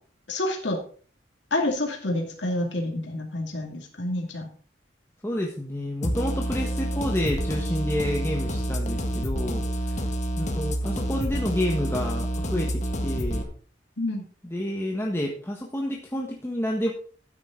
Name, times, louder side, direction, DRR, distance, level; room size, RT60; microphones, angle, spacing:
voice 1, 0.3-0.8 1.5-4.5 14.0-14.2, left 1 dB, 70° left, 1 dB, 2.4 m, -28 dB
voice 2, 5.2-10.1 10.4-13.5 14.4-16.9, equal, 15° left, 0 dB, 1.4 m, -29 dB
sound 1, 6.0-13.4, equal, 40° left, 1.7 m, -28 dB
13.0 x 9.6 x 3.8 m, 0.43 s
head